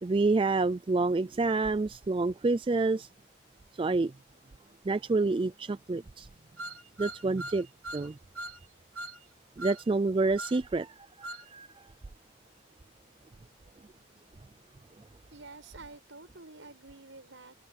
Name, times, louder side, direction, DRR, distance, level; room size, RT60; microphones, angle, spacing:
voice 1, 0.0-3.1 3.8-4.1 4.8-6.3 7.0-7.7 7.9-8.2 9.6-11.9, right 3 dB, 25° right, 0.3 m, -28 dB
sound 1, 6.6-8.1 8.4-8.6 9.0-9.2 9.6-9.8 10.4-10.6 11.2-11.5, right 1 dB, 85° right, 3.9 m, -40 dB
voice 2, 15.3-17.6, right 3 dB, 65° right, 6.0 m, -49 dB
open air
head